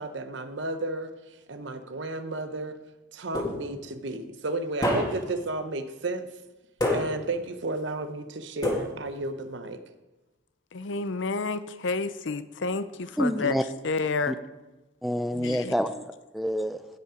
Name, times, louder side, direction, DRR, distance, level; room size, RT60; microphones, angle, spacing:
voice 1, 0.0-2.8 3.1-6.3 6.9-9.8, right 2 dB, 65° right, 9 dB, 0.8 m, -33 dB
sound 1, 3.3-3.9 4.8-5.4 6.8-7.4 8.6-9.3, left 1 dB, 20° left, 1.7 m, -28 dB
voice 2, 10.7-13.6 13.8-14.3 15.3-15.7, left 4 dB, 65° left, 13 dB, 0.6 m, -30 dB
voice 3, 13.2-13.6 14.3-14.4 15.0-16.1 16.3-16.8, equal, ahead, 8 dB, 0.4 m, -27 dB
16.0 x 5.5 x 5.0 m, 1.1 s
head